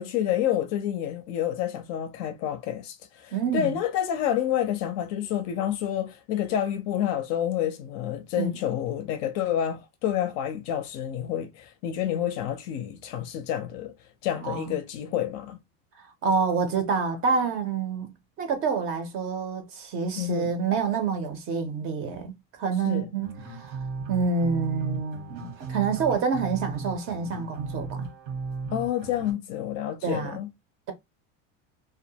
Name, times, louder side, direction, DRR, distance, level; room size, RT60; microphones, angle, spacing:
voice 1, 0.0-13.9 14.2-15.6 20.2-20.5 22.8-23.1 28.7-30.5, left 10 dB, 45° left, 0.5 m, -29 dB
voice 2, 3.3-3.8 8.4-8.5 14.4-14.7 16.2-18.1 18.4-23.8 24.1-28.1 30.0-30.4, right 5 dB, 35° right, 0.6 m, -27 dB
sound 1, 23.2-29.3, right 4 dB, 90° right, 1.2 m, -36 dB
2.3 x 2.1 x 2.7 m
cardioid pair, 155°, 38 cm